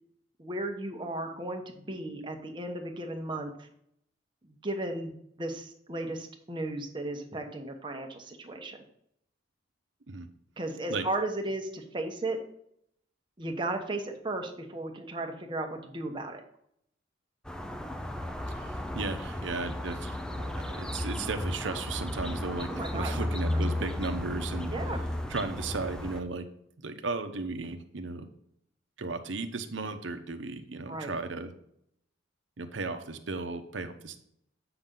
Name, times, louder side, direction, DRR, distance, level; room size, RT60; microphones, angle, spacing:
voice 1, 0.4-3.7 4.4-8.8 10.6-12.4 13.4-16.4 22.7-23.1 23.5-23.8 24.7-25.0 30.9-31.1, right 2 dB, 25° right, 3 dB, 1.1 m, -35 dB
sound 1, 17.4-26.2, left 1 dB, 5° left, 0.4 m, -34 dB
voice 2, 18.5-24.7 25.3-26.4 26.8-28.3 29.0-31.5 32.6-34.2, right 3 dB, 75° right, 8 dB, 0.8 m, -35 dB
7.9 x 5.9 x 3.8 m, 0.72 s
head